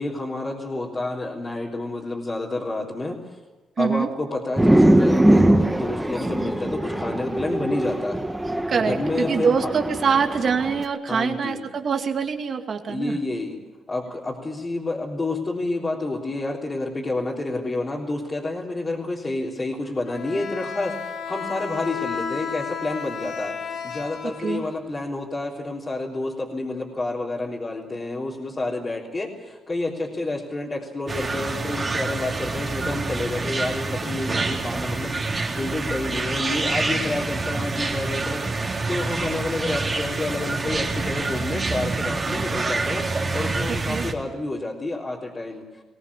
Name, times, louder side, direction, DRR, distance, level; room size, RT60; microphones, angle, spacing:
voice 1, 0.0-3.2 3.8-8.2 8.7-9.7 11.1-11.6 12.9-13.6 13.9-23.6 23.8-45.8, left 2 dB, 25° left, -5 dB, 3.6 m, -29 dB
voice 2, 3.8-4.1 8.7-13.2 24.4-24.6 43.9-44.1, right 6 dB, 50° right, 5 dB, 2.5 m, -24 dB
sound 1, 4.6-10.8, right 1 dB, 5° right, 1.4 m, -21 dB
Bowed string instrument, 20.1-25.1, left 6 dB, 60° left, 3.8 m, -32 dB
sound 2, 31.1-44.1, right 3 dB, 25° right, 3.6 m, -27 dB
21.5 x 17.5 x 8.5 m, 1.2 s
cardioid pair, 90°, 0 cm